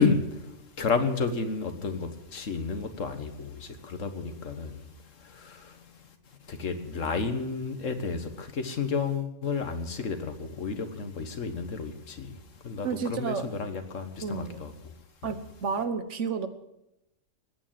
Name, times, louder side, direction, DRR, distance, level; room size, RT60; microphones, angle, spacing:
voice 1, 0.0-5.9 6.5-14.9, left 4 dB, 85° left, 1.8 m, -31 dB
voice 2, 12.8-13.5 14.2-14.6 15.2-16.5, right 6 dB, 70° right, 1.4 m, -31 dB
20.5 x 9.0 x 7.5 m
omnidirectional pair, 1.3 m